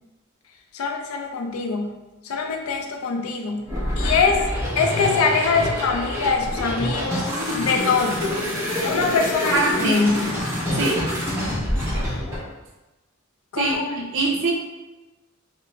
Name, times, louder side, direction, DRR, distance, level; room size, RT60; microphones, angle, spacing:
voice 1, 0.7-2.0 2.2-3.7 4.0-4.4 4.8-7.2 7.5-8.2 8.8-10.3 13.5-14.1, left 4 dB, 80° left, 4 dB, 0.4 m, -23 dB
sound 1, 3.7-12.4, left 1 dB, 15° right, 0.8 m, -26 dB
voice 2, 9.5-10.0 10.7-11.0 13.6-13.8 14.1-14.5, right 3 dB, 65° right, 0 dB, 0.5 m, -22 dB
2.4 x 2.0 x 2.9 m, 1.1 s
head